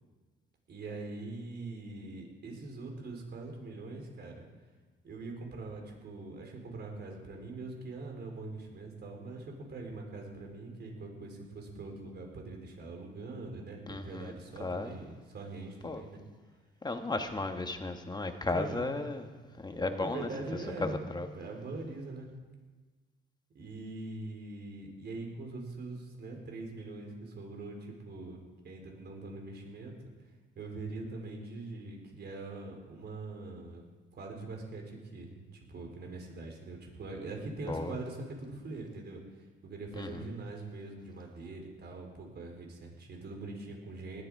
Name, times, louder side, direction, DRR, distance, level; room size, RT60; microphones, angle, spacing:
voice 1, 0.7-4.4 5.0-16.2 18.4-18.9 19.8-21.0 21.3-22.3 23.5-29.9 30.6-33.8 34.1-44.2, right 3 dB, 55° right, 2 dB, 4.2 m, -43 dB
voice 2, 13.9-14.3 14.6-14.9 15.8-16.0 16.8-19.3 19.6-20.3 20.8-21.3 37.7-37.9 39.9-40.2, left 2 dB, 20° left, 6 dB, 1.7 m, -34 dB
19.0 x 12.5 x 4.9 m, 1.3 s
cardioid pair, 90°, 20 cm